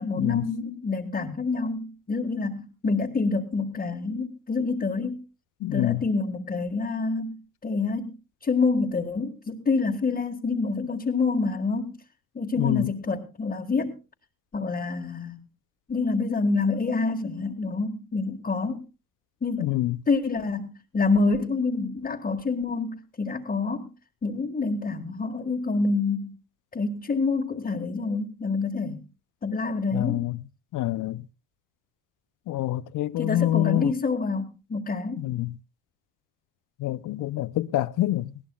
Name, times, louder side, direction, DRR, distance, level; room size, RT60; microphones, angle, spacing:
voice 1, 0.0-5.2 5.7-8.1 8.4-12.0 12.4-14.0 14.5-15.4 15.9-18.9 19.4-19.7 20.1-23.9 24.2-26.4 26.7-29.1 29.4-30.2 33.2-35.3, left 4 dB, 20° left, 1.7 m, -27 dB
voice 2, 5.6-6.0 12.6-12.9 19.6-20.0 29.9-30.4 30.7-31.3 32.5-33.9 35.2-35.5 36.8-38.3, left 15 dB, 45° left, 0.6 m, -26 dB
20.0 x 16.5 x 2.3 m
supercardioid pair, 110°, 45 cm